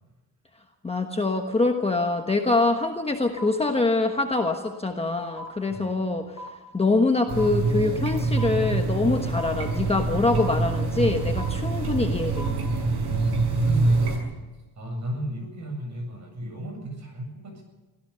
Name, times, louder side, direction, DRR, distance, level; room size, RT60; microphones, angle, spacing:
voice 1, 0.8-6.4 6.7-12.5, left 3 dB, 15° left, 3 dB, 1.2 m, -24 dB
sound 1, 3.4-3.5 4.4-4.5 5.4-5.5 6.4-6.5 7.4-7.5 8.4-8.5 9.4-9.5 10.4-10.5 11.4-11.5 12.4-12.5, left 1 dB, 40° left, 4.9 m, -37 dB
voice 2, 5.7-6.2 12.9-13.2 13.6-14.3 14.8-17.6, right 1 dB, 45° right, 3 dB, 7.7 m, -34 dB
sound 2, 7.3-14.2, right 3 dB, 75° right, 6.1 m, -25 dB
25.0 x 16.0 x 6.8 m, 1.2 s
wide cardioid pair, 175°, 40 cm